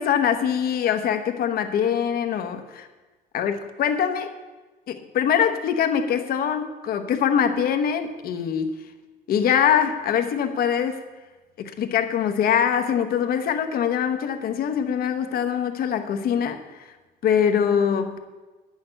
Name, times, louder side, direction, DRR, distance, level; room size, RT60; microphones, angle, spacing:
voice 1, 0.0-2.9 3.3-4.3 4.9-8.7 9.3-11.0 11.6-16.9 17.2-18.2, left 8 dB, 60° left, 7 dB, 1.0 m, -23 dB
9.3 x 6.6 x 7.7 m, 1.2 s
cardioid pair, 110°, 17 cm